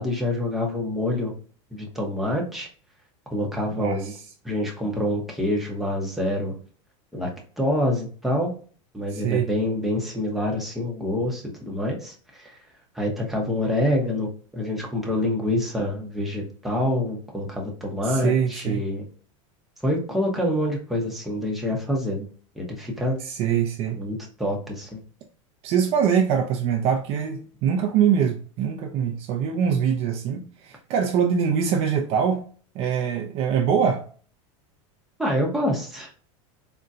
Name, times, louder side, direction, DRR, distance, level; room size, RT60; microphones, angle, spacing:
voice 1, 0.0-1.3 1.7-2.7 3.3-4.1 4.4-6.5 7.1-7.3 7.6-8.5 8.9-12.5 12.9-19.0 19.8-22.3 22.6-23.2 24.0-25.0 35.2-36.1, left 1 dB, ahead, 0.7 m, -26 dB
voice 2, 3.8-4.2 9.1-9.5 18.0-18.8 23.2-24.0 25.6-32.4 32.7-34.0, right 7 dB, 40° right, 0.4 m, -23 dB
3.9 x 2.2 x 2.4 m
supercardioid pair, 145°, 16 cm